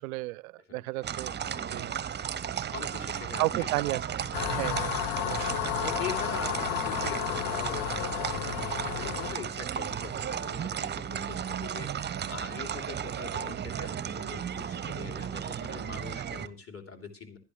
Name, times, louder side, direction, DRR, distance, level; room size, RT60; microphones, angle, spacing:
voice 1, 0.0-1.3 1.7-1.9 3.4-4.0 4.5-5.0 5.2-5.6, right 21 dB, 65° right, 0.6 m, -32 dB
voice 2, 0.7-1.1 2.7-3.7 3.9-4.0 4.3-4.6 5.3-5.4 5.8-17.4, left 5 dB, 30° left, 3.4 m, -42 dB
sound 1, 1.0-16.5, right 8 dB, 20° right, 0.8 m, -34 dB
sound 2, 4.3-9.3, left 13 dB, 55° left, 0.8 m, -32 dB
19.0 x 11.5 x 3.2 m
figure-of-eight pair, 65°, 47 cm